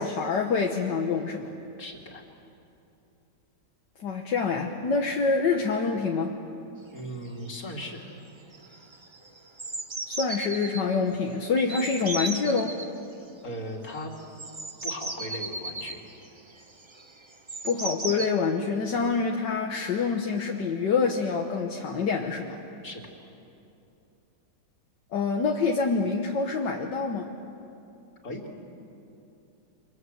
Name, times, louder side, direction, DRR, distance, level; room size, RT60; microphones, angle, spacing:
voice 1, 0.0-1.5 4.0-6.4 10.1-12.8 17.6-22.6 25.1-27.3, left 4 dB, 75° left, 2 dB, 1.9 m, -26 dB
voice 2, 1.8-2.2 6.9-8.1 13.4-14.1 14.8-16.1 22.8-23.0 28.2-28.5, equal, 50° left, 0 dB, 3.3 m, -38 dB
sound 1, 7.0-7.1 7.2-7.6 7.9-8.3 8.5-10.8 11.6-12.9 14.0-18.3, right 2 dB, 20° right, 0.8 m, -36 dB
28.0 x 26.0 x 8.0 m, 2.8 s
omnidirectional pair, 1.9 m